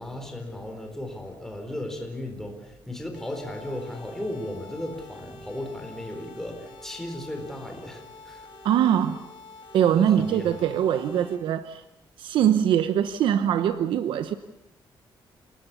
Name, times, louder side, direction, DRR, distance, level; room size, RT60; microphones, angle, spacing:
voice 1, 0.0-8.5 10.0-10.6, left 1 dB, 5° left, 4.3 m, -36 dB
sound 1, 3.1-11.3, left 2 dB, 75° left, 6.2 m, -47 dB
voice 2, 8.6-9.2 9.7-11.8 12.2-14.3, right 9 dB, 90° right, 0.9 m, -22 dB
29.0 x 18.5 x 7.0 m
wide cardioid pair, 175°, 8 cm